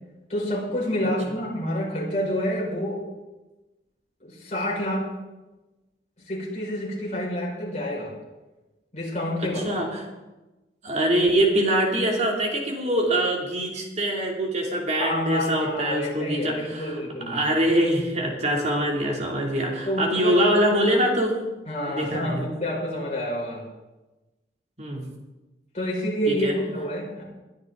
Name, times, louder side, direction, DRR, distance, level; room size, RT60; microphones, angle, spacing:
voice 1, 0.3-3.0 4.2-5.0 6.3-8.1 8.9-9.6 15.0-17.4 19.8-20.4 21.7-23.6 25.7-27.2, equal, 40° left, -4 dB, 5.5 m, -28 dB
voice 2, 9.5-10.0 10.8-17.0 17.3-21.3 21.9-22.5 24.8-25.1 26.3-26.5, right 1 dB, 40° right, 0 dB, 3.0 m, -24 dB
21.0 x 10.5 x 3.9 m, 1.1 s
head